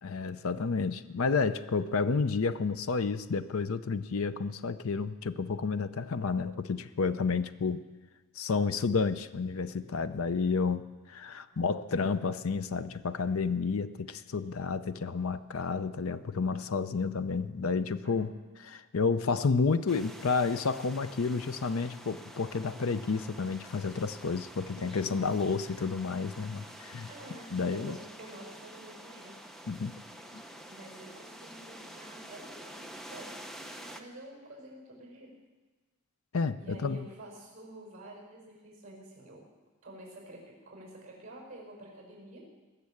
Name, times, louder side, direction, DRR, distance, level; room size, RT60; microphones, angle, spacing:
voice 1, 0.0-7.8 8.4-18.3 18.7-27.1 27.5-28.0 29.7-29.9 30.3-30.4 36.3-37.1, left 4 dB, 70° left, 12 dB, 0.6 m, -30 dB
sound 1, 19.9-34.0, equal, ahead, 0.7 m, -48 dB
voice 2, 27.1-29.4 30.7-35.3 36.6-39.4 39.8-42.4, right 1 dB, 35° right, -1 dB, 5.3 m, -49 dB
19.5 x 7.0 x 8.5 m, 1.3 s
head